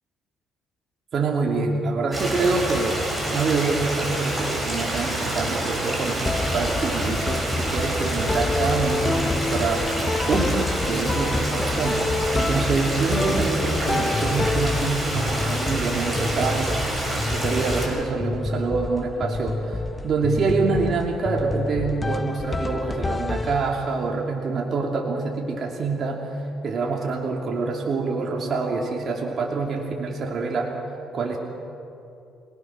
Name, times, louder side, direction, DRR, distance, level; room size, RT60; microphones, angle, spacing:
voice 1, 1.1-3.0 3.3-10.0 10.3-26.3 26.6-30.8 31.1-31.4, right 4 dB, 50° right, 0 dB, 2.8 m, -26 dB
Stream, 2.1-17.9, right 1 dB, 15° right, 6.8 m, -27 dB
sound 1, 6.3-24.1, left 3 dB, 20° left, 0.7 m, -28 dB
26.0 x 19.5 x 6.2 m, 2.6 s
cardioid pair, 100°, 0 cm